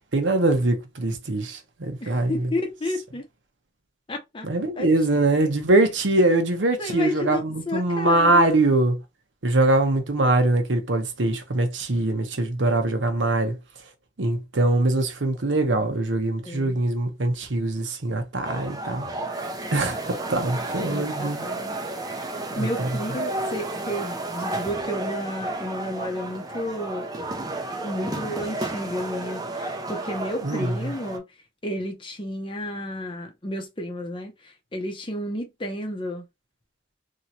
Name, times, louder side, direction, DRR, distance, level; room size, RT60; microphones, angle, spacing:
voice 1, 0.1-2.3 4.4-9.0 9.4-13.5 14.2-19.1 19.7-21.4 22.6-22.9 30.4-30.7, right 2 dB, 80° right, 0.9 m, -22 dB
voice 2, 2.0-3.3 4.1-4.5 4.8-4.9 5.4-5.5 6.8-8.5 16.4-16.8 20.8-27.1 27.8-31.2 31.6-36.2, left 1 dB, 25° left, 0.7 m, -32 dB
sound 1, 18.4-31.2, right 2 dB, 20° right, 0.5 m, -32 dB
3.1 x 2.8 x 2.7 m
head